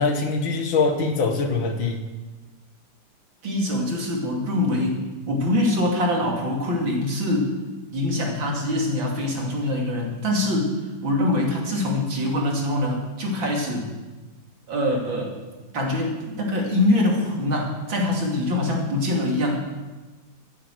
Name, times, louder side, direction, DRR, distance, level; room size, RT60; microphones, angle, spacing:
voice 1, 0.0-2.0, left 4 dB, 90° left, 4 dB, 2.4 m, -23 dB
voice 2, 3.4-7.5 7.9-13.9 14.7-15.4 15.7-19.6, left 1 dB, 85° right, -1 dB, 3.5 m, -24 dB
13.5 x 10.0 x 7.8 m, 1.2 s
omnidirectional pair, 2.1 m